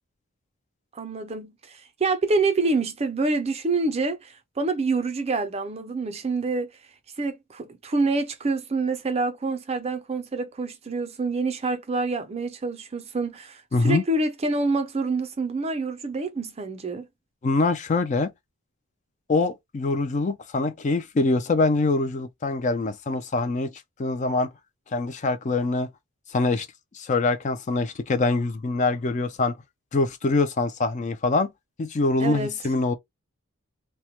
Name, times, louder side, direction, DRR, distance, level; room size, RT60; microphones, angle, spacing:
voice 1, 0.9-6.7 7.2-17.1 32.2-32.6, right 3 dB, 30° right, 0.4 m, -27 dB
voice 2, 13.7-14.0 17.4-18.3 19.3-23.7 24.0-24.5 24.9-25.9 26.3-26.7 26.9-29.6 29.9-31.5 31.8-32.9, left 3 dB, 35° left, 0.3 m, -24 dB
2.1 x 2.1 x 2.8 m
head